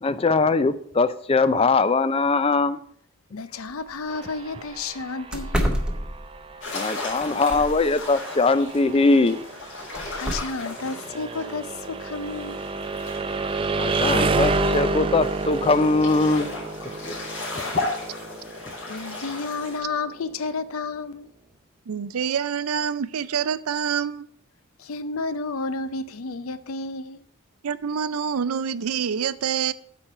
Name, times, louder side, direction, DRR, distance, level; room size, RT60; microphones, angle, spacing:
voice 1, 0.0-2.8 6.7-9.4 13.8-16.5 17.1-17.2, left 3 dB, 25° left, 0.4 m, -21 dB
voice 2, 3.3-5.8 10.2-12.6 18.6-21.3 24.8-27.2, left 3 dB, 75° left, 0.6 m, -31 dB
sound 1, 3.7-3.8 4.2-4.3 4.7-4.8 5.3-6.5 7.1-7.9 9.9-10.3, equal, 5° right, 0.9 m, -28 dB
sound 2, 4.1-19.9, right 3 dB, 25° right, 0.5 m, -30 dB
sound 3, 6.6-19.8, left 3 dB, 60° left, 3.5 m, -36 dB
voice 3, 21.9-24.3 27.6-29.7, right 7 dB, 85° right, 0.5 m, -26 dB
8.4 x 4.5 x 6.5 m
head